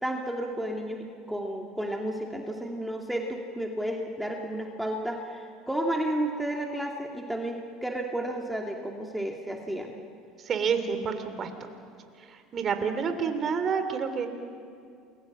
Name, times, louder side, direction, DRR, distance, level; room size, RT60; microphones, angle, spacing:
voice 1, 0.0-10.0, right 1 dB, 5° right, 1 dB, 2.5 m, -32 dB
voice 2, 10.4-11.7 12.2-14.3, right 6 dB, 40° right, 8 dB, 3.1 m, -29 dB
28.5 x 22.0 x 7.4 m, 2.4 s
hypercardioid pair, 80°, 0 cm